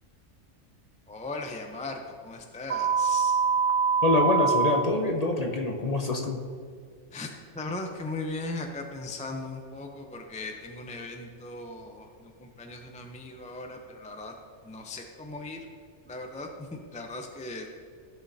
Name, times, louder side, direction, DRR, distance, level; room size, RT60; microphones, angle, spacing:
voice 1, 1.1-3.4 7.1-7.3 7.5-14.3 14.6-15.7 16.1-17.8, left 2 dB, 10° left, 3 dB, 0.4 m, -38 dB
sound 1, 2.7-4.7, right 6 dB, 75° right, 1.2 m, -24 dB
voice 2, 4.0-6.4, left 2 dB, 40° left, 2 dB, 0.7 m, -25 dB
14.5 x 6.1 x 2.7 m, 2.1 s
omnidirectional pair, 1.2 m